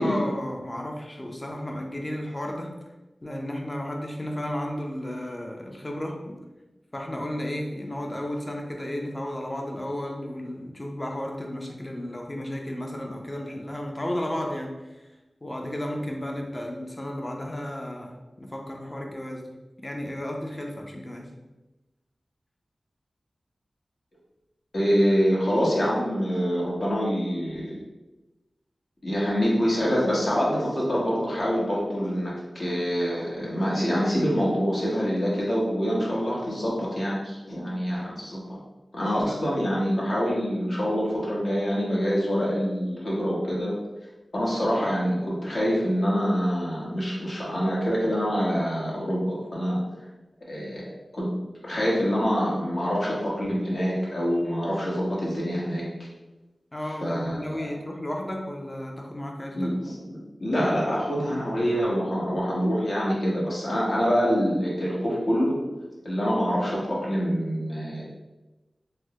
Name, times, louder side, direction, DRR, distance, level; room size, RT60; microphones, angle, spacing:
voice 1, 0.0-2.7 3.2-6.4 6.9-15.1 15.4-19.5 19.8-21.3 39.3-39.9 56.7-59.7, left 1 dB, 30° left, 1 dB, 0.5 m, -33 dB
voice 2, 24.7-27.8 29.0-38.6 38.9-43.7 44.3-49.8 50.5-50.8 51.1-51.3 51.6-55.8 57.0-57.7 59.5-65.6 66.0-68.0, equal, 60° left, -5 dB, 1.0 m, -25 dB
3.4 x 2.1 x 2.7 m, 1.1 s
wide cardioid pair, 65°, 0 cm